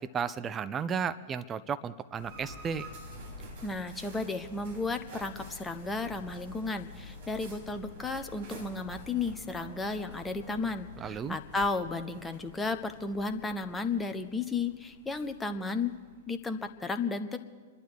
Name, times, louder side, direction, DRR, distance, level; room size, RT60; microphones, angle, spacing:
voice 1, 0.1-2.9 11.0-11.4, right 6 dB, 25° right, 13 dB, 0.7 m, -33 dB
sound 1, 2.1-16.7, left 1 dB, 60° right, 4.0 m, -48 dB
voice 2, 3.6-15.9 16.3-17.4, left 3 dB, 10° left, 8 dB, 1.1 m, -33 dB
26.0 x 11.5 x 4.7 m, 1.5 s
figure-of-eight pair, 100°, 0 cm